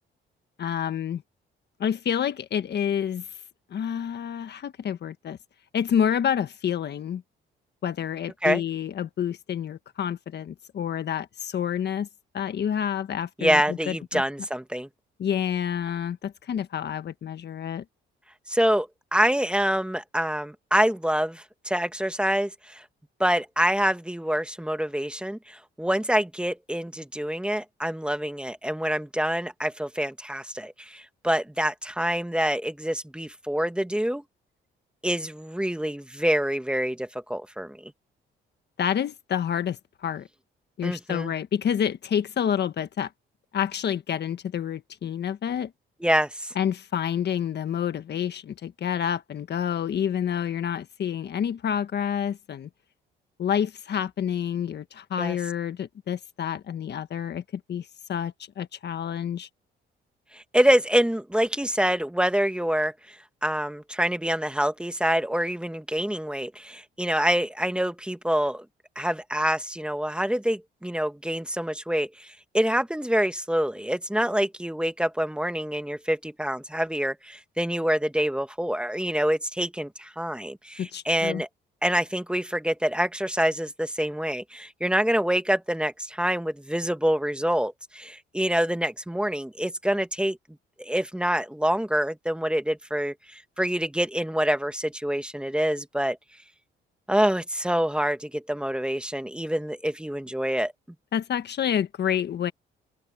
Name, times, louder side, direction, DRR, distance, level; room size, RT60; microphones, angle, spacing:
voice 1, 0.6-1.2 1.8-3.2 3.7-5.4 5.7-7.2 7.8-12.1 12.3-14.2 15.2-17.8 38.8-40.3 40.8-43.1 43.5-45.7 46.5-52.7 53.4-57.4 57.7-59.5 80.8-81.4 101.1-102.5, left 9 dB, 60° left, 1.5 m, -28 dB
voice 2, 13.4-14.9 18.5-22.8 23.2-34.2 35.0-37.9 40.8-41.3 46.0-46.5 55.2-55.4 60.3-62.9 63.4-68.7 69.0-81.5 81.8-90.4 90.8-96.2 97.1-100.7, equal, 5° right, 1.7 m, -26 dB
open air
cardioid pair, 90°, 20 cm